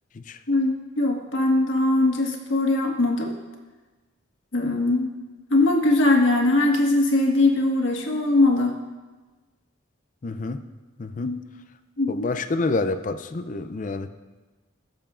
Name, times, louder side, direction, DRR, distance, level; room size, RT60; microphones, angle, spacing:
voice 1, 0.5-3.3 4.5-5.1 5.5-8.7 11.2-11.4 12.0-12.3, left 2 dB, 75° left, 0 dB, 1.5 m, -21 dB
voice 2, 10.2-10.6 11.0-11.3 12.1-14.1, left 3 dB, 40° left, 10 dB, 0.4 m, -28 dB
20.5 x 6.9 x 2.5 m, 1.3 s
head